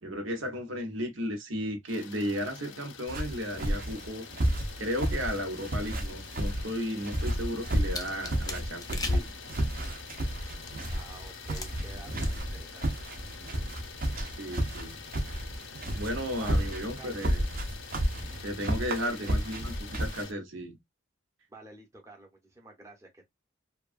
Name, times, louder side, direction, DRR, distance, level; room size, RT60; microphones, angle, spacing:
voice 1, 0.0-4.2 4.8-9.3 14.4-15.0 15.9-17.4 18.4-20.8, equal, 85° right, 0.9 m, -34 dB
Idling, 1.9-20.3, left 7 dB, 70° left, 0.5 m, -47 dB
sound 1, 3.1-20.2, right 1 dB, 45° right, 0.7 m, -32 dB
sound 2, 7.9-11.0 11.5-11.9 12.2-12.6 12.9-13.1, left 2 dB, 20° left, 0.5 m, -35 dB
voice 2, 10.9-12.9 16.4-17.3 19.0-19.4 21.5-23.3, right 2 dB, 15° right, 0.8 m, -50 dB
2.9 x 2.3 x 2.4 m
head